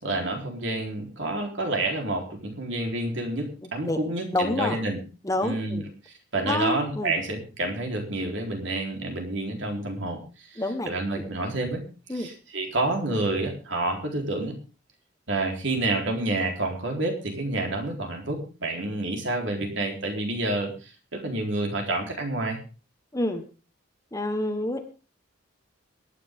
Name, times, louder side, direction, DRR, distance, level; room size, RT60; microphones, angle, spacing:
voice 1, 0.0-5.0 5.4-11.8 12.1-14.5 15.3-22.6, right 2 dB, 60° right, 2 dB, 4.0 m, -29 dB
voice 2, 4.3-4.8 5.2-5.8 6.4-7.2 10.6-10.9 12.1-12.3 23.1-23.4 24.1-24.9, left 1 dB, 15° left, 6 dB, 1.3 m, -27 dB
22.5 x 9.8 x 3.7 m, 0.35 s
head